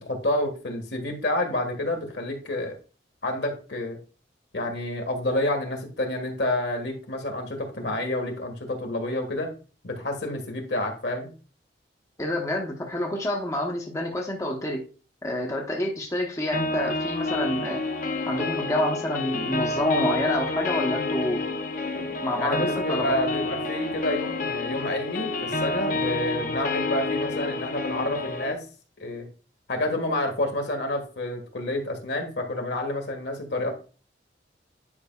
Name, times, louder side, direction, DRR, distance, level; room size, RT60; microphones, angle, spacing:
voice 1, 0.0-2.7 3.2-4.0 4.5-9.5 9.8-11.3 22.4-28.6 29.0-29.3 29.7-33.7, left 1 dB, 70° left, 3 dB, 1.6 m, -29 dB
voice 2, 12.2-14.8 15.2-17.8 18.3-21.4 22.0-23.2, left 1 dB, 15° left, 0 dB, 0.9 m, -28 dB
sound 1, 16.5-28.5, left 2 dB, 45° left, 0.7 m, -29 dB
9.7 x 5.2 x 2.3 m, 0.37 s
head